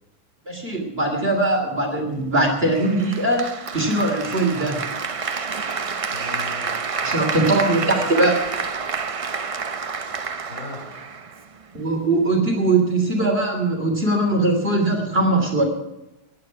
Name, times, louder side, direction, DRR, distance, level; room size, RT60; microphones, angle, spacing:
voice 1, 0.5-3.5 3.7-4.7 7.0-8.3 11.7-15.6, right 2 dB, 40° right, 1 dB, 3.3 m, -21 dB
Applause, 2.7-11.7, right 5 dB, 55° right, 0.3 m, -29 dB
voice 2, 6.1-7.0 7.3-8.3 10.5-11.0 13.2-13.3, left 2 dB, 50° left, -3 dB, 7.6 m, -37 dB
19.0 x 11.0 x 5.8 m, 0.94 s
omnidirectional pair, 1.6 m